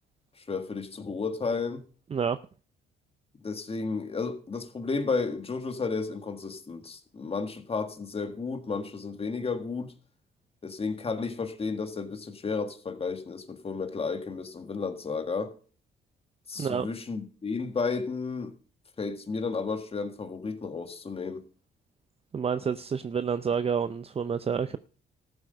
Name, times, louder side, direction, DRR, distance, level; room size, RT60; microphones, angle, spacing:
voice 1, 0.4-1.8 3.4-9.9 10.6-15.5 16.5-18.5 19.0-21.4, left 4 dB, 30° left, 1.7 m, -32 dB
voice 2, 22.3-24.8, right 6 dB, 30° right, 0.5 m, -28 dB
14.0 x 7.9 x 5.3 m
cardioid pair, 90°, 20 cm